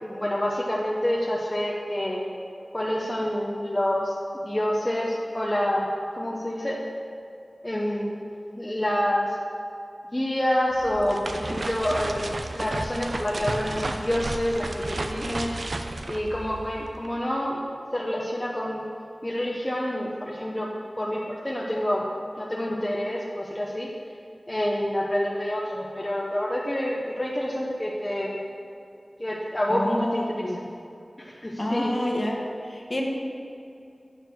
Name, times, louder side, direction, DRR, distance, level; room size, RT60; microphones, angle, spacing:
voice 1, 0.0-2.2 2.7-4.1 4.4-5.9 6.1-6.8 7.6-8.1 8.6-9.3 10.1-12.3 12.5-15.5 16.1-17.6 17.9-18.8 19.2-20.7 21.0-22.0 22.4-23.9 24.5-28.4 29.2-30.2 30.6-30.7 31.2-32.1, left 1 dB, 20° left, -4 dB, 0.9 m, -27 dB
sound 1, 10.7-17.1, right 2 dB, 65° right, 0.5 m, -33 dB
voice 2, 29.7-30.6 31.6-32.4 32.7-33.0, left 1 dB, 40° left, -1 dB, 1.3 m, -28 dB
9.1 x 4.8 x 6.4 m, 2.6 s
wide cardioid pair, 65°, 0 cm